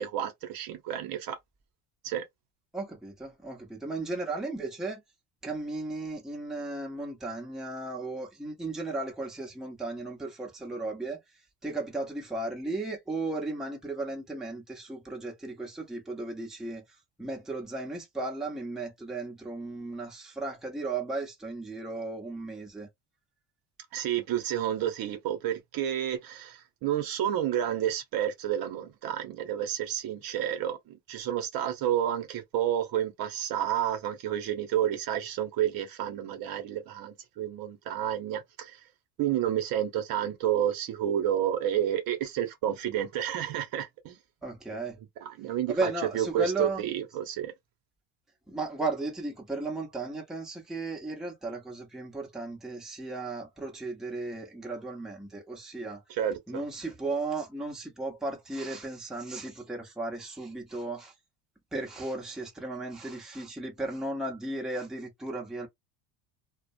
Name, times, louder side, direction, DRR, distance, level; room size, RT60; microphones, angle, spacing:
voice 1, 0.0-1.4 2.0-2.2 23.9-38.7 39.2-44.2 45.4-47.5 56.1-56.6, right 10 dB, 50° right, 0.8 m, -30 dB
voice 2, 2.7-5.0 5.4-11.2 11.6-16.8 17.2-22.9 44.4-45.0 45.7-46.9 48.5-56.0 56.5-61.1 61.7-65.7, right 2 dB, ahead, 0.8 m, -35 dB
2.3 x 2.2 x 2.5 m
supercardioid pair, 115°, 44 cm